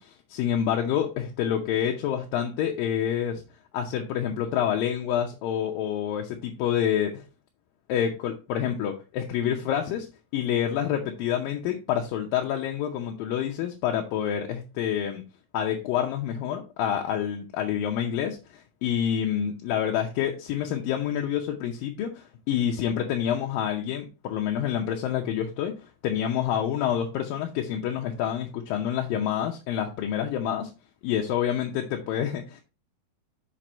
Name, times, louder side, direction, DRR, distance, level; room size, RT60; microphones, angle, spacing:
voice 1, 0.0-3.4 3.7-7.2 7.9-10.1 10.3-15.2 15.5-25.8 26.0-30.7 31.0-32.6, left 9 dB, 75° left, 2 dB, 2.3 m, -27 dB
6.4 x 6.1 x 4.3 m, 0.30 s
omnidirectional pair, 4.6 m